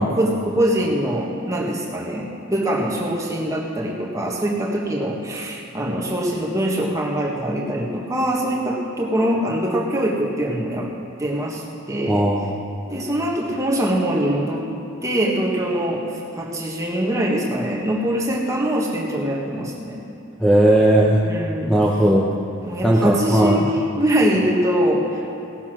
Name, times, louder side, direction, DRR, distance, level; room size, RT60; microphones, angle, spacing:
voice 1, 0.0-10.9 11.2-12.3 12.9-14.7 15.0-16.0 16.3-20.0 21.2-21.7 22.6-25.3, right 1 dB, 15° right, -2 dB, 1.5 m, -23 dB
voice 2, 12.1-12.6 20.4-21.2 21.7-22.3 22.8-23.6, right 1 dB, 5° left, -5 dB, 0.9 m, -16 dB
17.5 x 7.1 x 6.2 m, 3.0 s
head